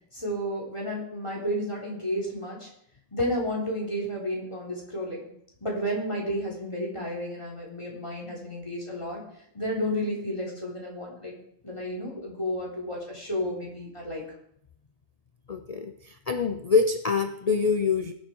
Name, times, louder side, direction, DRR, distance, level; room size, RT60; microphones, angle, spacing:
voice 1, 0.1-2.7 3.1-5.3 5.6-9.2 9.5-11.3 11.6-14.2, equal, 25° left, -2 dB, 4.1 m, -31 dB
voice 2, 15.5-18.1, left 5 dB, 40° left, 7 dB, 0.6 m, -25 dB
18.5 x 7.6 x 4.7 m, 0.70 s
omnidirectional pair, 1.3 m